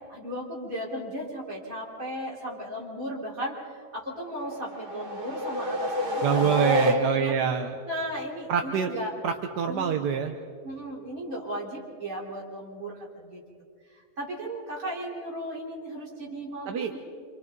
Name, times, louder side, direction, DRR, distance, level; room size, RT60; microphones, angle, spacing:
voice 1, 0.1-7.3 7.9-9.1 9.7-10.1 10.6-13.4 13.9-17.0, equal, 55° right, -4 dB, 4.6 m, -35 dB
sound 1, 4.4-7.5, right 1 dB, 35° right, 1.6 m, -28 dB
voice 2, 6.2-7.7 8.5-8.9 9.2-10.3 16.7-16.9, right 7 dB, 90° right, 5 dB, 1.6 m, -26 dB
27.5 x 26.5 x 4.0 m, 2.2 s
omnidirectional pair, 1.7 m